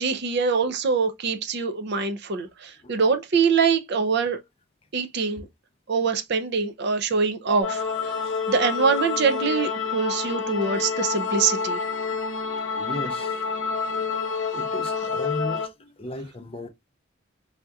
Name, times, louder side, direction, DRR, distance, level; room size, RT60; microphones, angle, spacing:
voice 1, 0.0-4.4 4.9-5.4 5.9-7.8 8.5-11.8, right 5 dB, 55° right, 0.5 m, -24 dB
sound 1, 7.6-15.7, left 5 dB, 85° left, 0.7 m, -28 dB
voice 2, 12.8-13.4 14.5-16.7, left 1 dB, 30° left, 0.4 m, -35 dB
3.4 x 2.7 x 2.3 m
head